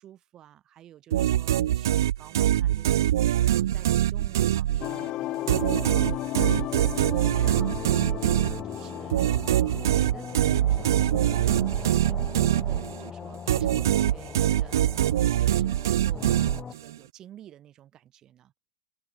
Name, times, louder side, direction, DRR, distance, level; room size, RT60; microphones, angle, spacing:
voice 1, 0.0-11.1 11.4-16.4 16.7-18.5, right 11 dB, 30° right, 6.3 m, -51 dB
sound 1, 1.1-5.1 5.5-13.1 13.5-17.0, right 12 dB, 65° right, 0.4 m, -24 dB
sound 2, 4.8-10.7, left 16 dB, 40° left, 0.9 m, -35 dB
sound 3, 7.4-16.7, left 7 dB, 20° left, 1.5 m, -40 dB
hypercardioid pair, 100°, 2 cm